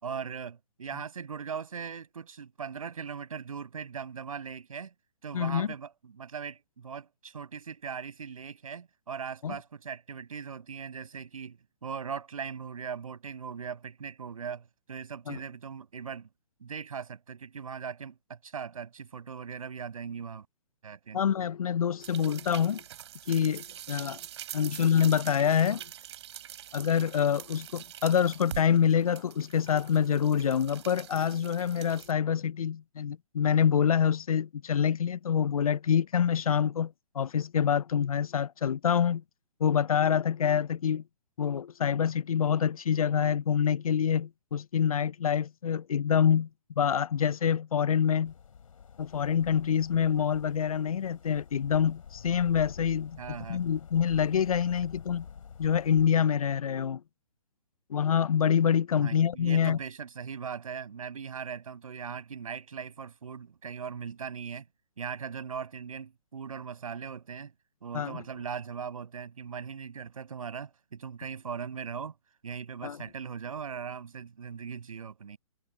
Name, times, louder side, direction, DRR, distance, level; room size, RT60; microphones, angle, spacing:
voice 1, 0.0-4.9 5.2-16.3 16.6-20.4 20.8-21.2 53.2-53.6 59.0-64.7 65.0-67.5 67.8-72.1 72.4-75.4, right 6 dB, 75° right, 6.6 m, -39 dB
voice 2, 5.3-5.7 9.4-9.6 15.3-15.4 21.1-22.8 23.3-24.2 24.5-25.8 26.7-39.2 39.6-41.0 41.4-46.5 46.8-48.3 49.0-53.2 53.5-55.3 55.6-57.0 57.9-59.8 67.9-68.2 72.8-73.0, left 8 dB, 90° left, 0.5 m, -26 dB
sound 1, 22.0-32.1, right 11 dB, 50° right, 5.9 m, -45 dB
sound 2, 48.2-56.1, left 7 dB, 75° left, 4.5 m, -48 dB
hypercardioid pair, 150°, 18 cm